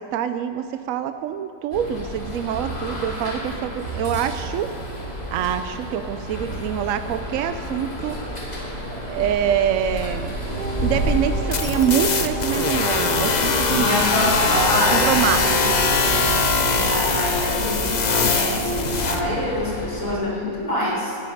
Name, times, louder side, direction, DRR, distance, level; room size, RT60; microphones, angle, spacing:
voice 1, 0.0-4.7 5.3-10.4 10.8-13.9 14.9-15.5, right 9 dB, 75° right, 9 dB, 0.7 m, -25 dB
sound 1, 1.7-20.1, right 1 dB, 25° left, 2.5 m, -30 dB
sound 2, 10.4-19.0, right 2 dB, 25° right, 1.6 m, -31 dB
sound 3, 11.5-19.2, left 4 dB, 75° left, 0.4 m, -22 dB
voice 2, 13.7-16.1 16.7-21.2, equal, 45° left, -7 dB, 4.9 m, -26 dB
14.0 x 6.5 x 9.9 m, 2.4 s
omnidirectional pair, 1.9 m